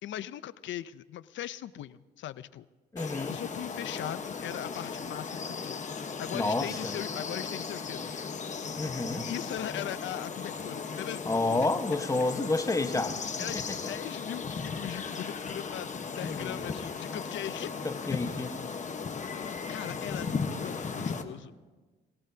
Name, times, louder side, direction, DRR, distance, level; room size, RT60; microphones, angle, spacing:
voice 1, 0.0-2.7 3.3-8.2 9.2-11.2 13.4-17.7 19.2-20.3 20.6-21.5, left 12 dB, 70° left, 15 dB, 0.6 m, -39 dB
voice 2, 2.9-3.3 6.3-6.9 8.8-9.3 11.3-13.2 13.5-13.8 16.2-16.6 17.8-18.5, left 2 dB, 15° left, 7 dB, 1.2 m, -30 dB
sound 1, 3.0-21.2, left 5 dB, 40° left, 1.2 m, -36 dB
26.0 x 17.5 x 2.8 m, 1.3 s
cardioid pair, 90°, 20 cm